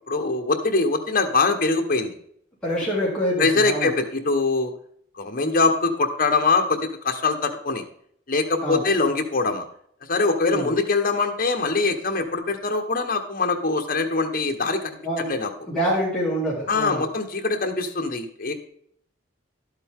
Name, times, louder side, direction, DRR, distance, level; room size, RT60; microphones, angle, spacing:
voice 1, 0.1-2.2 3.4-4.7 5.2-6.8 7.0-7.8 8.3-9.6 10.1-15.0 15.3-15.5 16.7-18.5, left 3 dB, 50° left, 5 dB, 1.3 m, -23 dB
voice 2, 2.6-3.9 8.6-8.9 10.4-10.7 15.0-15.3 15.7-17.1, equal, 5° left, -8 dB, 2.9 m, -26 dB
11.5 x 8.0 x 3.7 m, 0.65 s
head